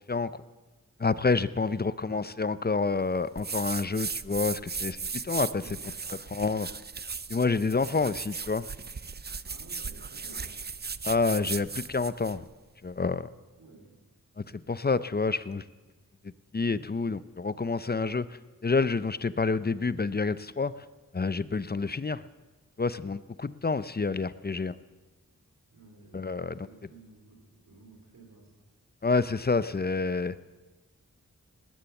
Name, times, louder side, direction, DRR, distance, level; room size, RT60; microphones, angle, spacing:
voice 1, 1.0-5.0 5.2-5.8 6.3-6.7 7.3-8.7 11.0-12.4 12.8-13.3 14.7-15.6 16.5-18.3 18.6-20.7 21.1-22.2 22.8-24.7 26.1-26.7 29.0-30.3, left 4 dB, 30° left, 15 dB, 0.6 m, -28 dB
voice 2, 1.7-2.1 5.6-6.4 9.5-10.6 13.6-14.0 25.7-26.2 26.6-28.5, right 3 dB, 90° right, 2 dB, 3.6 m, -54 dB
sound 1, 3.4-12.4, right 5 dB, 30° right, 0.5 m, -37 dB
19.0 x 10.0 x 7.1 m, 1.2 s
cardioid pair, 50°, 33 cm